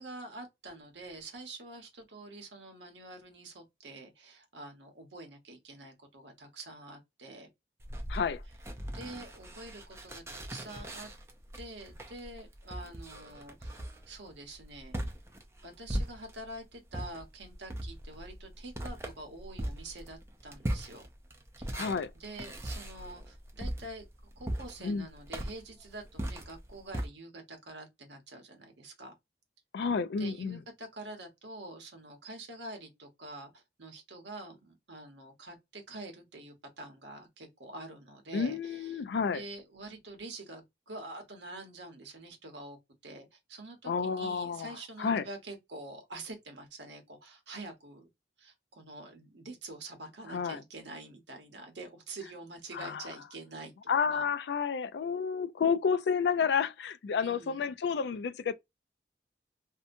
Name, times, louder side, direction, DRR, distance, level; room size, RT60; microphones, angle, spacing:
voice 1, 0.0-7.5 8.8-11.1 11.5-15.0 15.6-21.1 21.6-21.8 22.1-24.0 24.4-29.1 30.2-39.0 39.3-48.1 48.4-54.3 57.2-57.7, right 2 dB, 85° right, 1.0 m, -46 dB
sound 1, 7.8-16.5 16.9-27.1, right 1 dB, 15° right, 0.4 m, -39 dB
voice 2, 8.1-8.4 21.7-22.1 24.8-25.1 29.7-30.6 38.3-39.4 43.9-44.7 45.0-45.2 50.3-50.6 52.7-53.0 53.9-58.5, left 6 dB, 75° left, 0.3 m, -30 dB
2.7 x 2.1 x 2.5 m
head